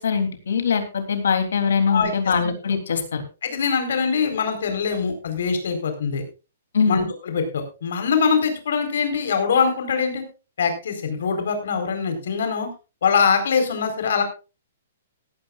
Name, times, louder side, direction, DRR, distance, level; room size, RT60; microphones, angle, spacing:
voice 1, 0.0-3.2 6.7-7.0, left 6 dB, 80° left, 7 dB, 3.3 m, -22 dB
voice 2, 3.4-6.2 6.9-10.2 10.6-12.7 13.0-14.2, left 6 dB, 60° left, 6 dB, 4.5 m, -23 dB
17.5 x 13.5 x 2.5 m, 0.32 s
hypercardioid pair, 180°, 0 cm